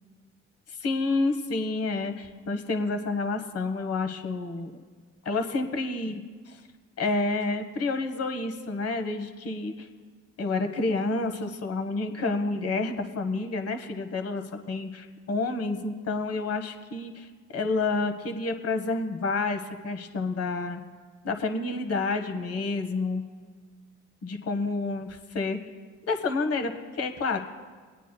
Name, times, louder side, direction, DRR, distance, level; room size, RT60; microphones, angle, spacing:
voice 1, 0.7-4.7 5.2-6.6 7.0-9.9 10.4-20.8 21.2-23.2 24.2-25.6 26.1-27.4, left 3 dB, 50° left, 6 dB, 1.2 m, -29 dB
26.0 x 9.1 x 2.3 m, 1.5 s
hypercardioid pair, 55°, 32 cm